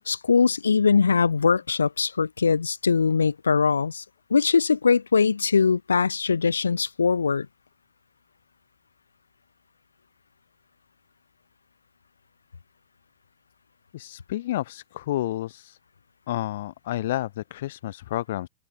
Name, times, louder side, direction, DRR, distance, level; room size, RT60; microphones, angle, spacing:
voice 1, 0.1-4.0 4.3-7.5, left 5 dB, 75° left, 2.1 m, -21 dB
voice 2, 13.9-15.8 16.3-18.5, left 14 dB, 55° left, 4.6 m, -30 dB
open air
figure-of-eight pair, 90°, 0 cm